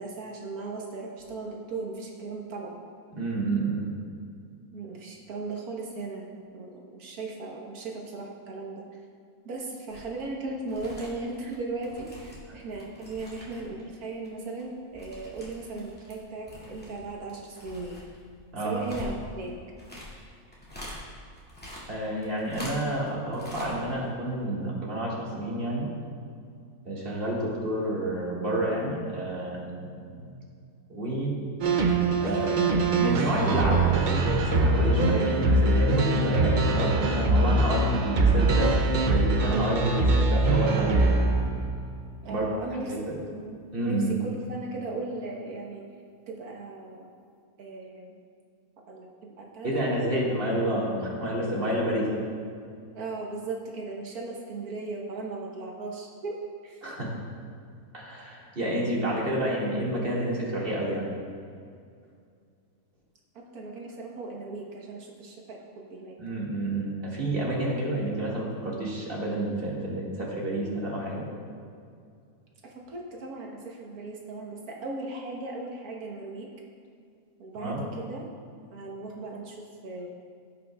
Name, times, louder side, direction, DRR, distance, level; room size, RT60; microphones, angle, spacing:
voice 1, 0.0-2.8 4.7-8.9 9.4-18.0 18.6-19.6 42.2-45.9 46.3-47.1 47.6-48.1 48.9-49.8 52.9-56.8 63.3-66.2 72.6-76.5 77.4-78.2 78.7-80.1, right 3 dB, 80° right, -1 dB, 1.6 m, -37 dB
voice 2, 3.1-3.8 12.5-12.6 18.5-18.8 21.9-25.9 26.9-30.4 30.9-31.3 32.2-41.1 42.3-42.4 42.9-43.0 43.7-44.1 49.6-52.1 56.8-57.1 57.9-61.1 66.2-71.2 77.6-77.8, right 1 dB, 40° right, -5 dB, 2.1 m, -29 dB
sound 1, 9.9-10.2 10.5-13.8 14.1-16.2 16.4-21.0 21.3-23.1 23.3-23.7 24.0-24.1, left 1 dB, 5° left, 2.0 m, -44 dB
sound 2, 31.6-41.8, right 2 dB, 60° right, 0.5 m, -23 dB
16.5 x 5.9 x 2.3 m, 2.3 s
omnidirectional pair, 1.6 m